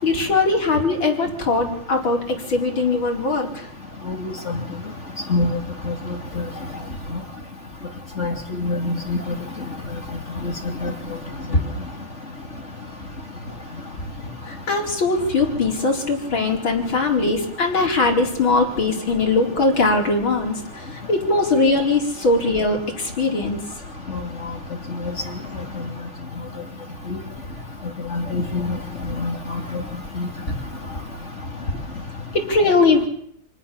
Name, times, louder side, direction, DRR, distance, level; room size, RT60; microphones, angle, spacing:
voice 1, 0.0-3.7 14.5-23.6 32.3-33.1, left 3 dB, 75° left, 1 dB, 5.3 m, -20 dB
voice 2, 8.2-9.4 10.4-10.5 10.8-10.9 28.1-28.8 29.2-29.8 30.2-30.3, left 3 dB, 35° left, 3 dB, 3.3 m, -24 dB
27.5 x 19.5 x 7.2 m, 0.69 s
omnidirectional pair, 2.2 m